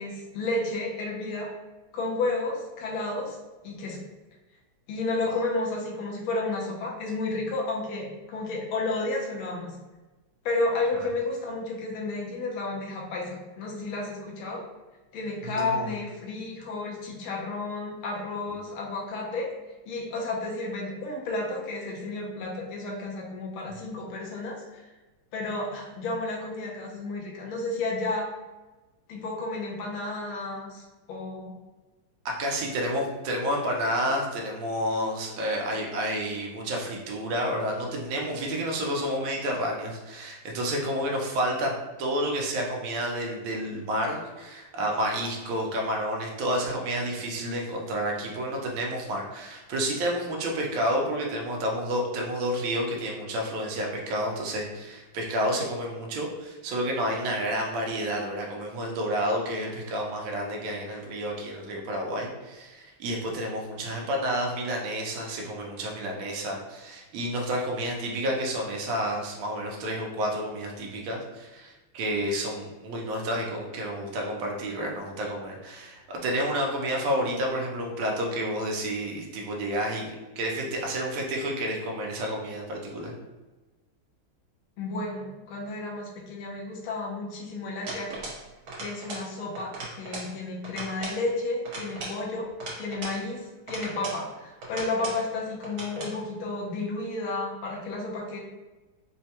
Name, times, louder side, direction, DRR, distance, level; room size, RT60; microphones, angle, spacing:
voice 1, 0.0-1.5 1.9-3.4 3.6-4.0 4.9-9.8 10.4-14.7 15.1-19.5 19.8-24.9 25.3-28.3 29.1-31.5 84.8-88.3 88.8-92.5 92.8-98.4, left 2 dB, 80° left, -1 dB, 1.5 m, -32 dB
voice 2, 15.4-15.9 32.2-83.2, equal, 75° right, 0 dB, 1.5 m, -30 dB
sound 1, 87.9-88.4 88.7-89.3 89.6-90.3 90.6-91.2 91.6-93.2 93.7-94.2 94.6-95.2 95.6-96.2, right 2 dB, 55° right, 1.3 m, -38 dB
4.6 x 2.1 x 2.8 m, 1.2 s
omnidirectional pair, 2.3 m